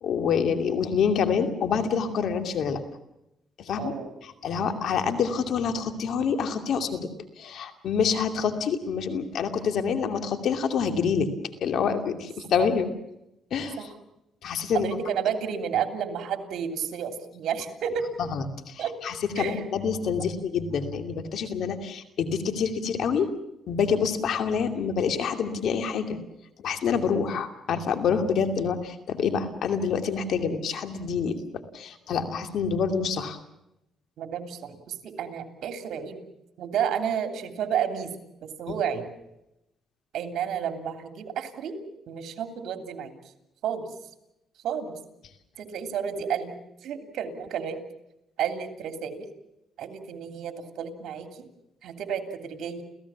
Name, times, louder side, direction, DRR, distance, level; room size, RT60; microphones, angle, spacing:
voice 1, 0.0-2.8 3.6-3.9 4.4-7.1 7.4-11.3 11.6-12.9 13.5-13.8 14.4-14.9 18.3-23.3 23.7-26.2 26.6-33.4, left 6 dB, 70° left, 7 dB, 2.6 m, -27 dB
voice 2, 3.8-4.1 4.6-4.8 12.6-12.7 13.8-14.0 14.7-18.1 18.8-18.9 19.3-19.6 27.3-27.4 34.2-36.2 36.6-38.1 38.4-39.1 40.1-41.8 42.1-43.1 43.6-43.9 44.6-45.0 45.6-47.8 48.4-49.3 49.8-51.5 51.8-52.8, right 8 dB, 75° right, 7 dB, 3.1 m, -31 dB
29.5 x 16.0 x 7.3 m, 0.86 s
cardioid pair, 90°, 0 cm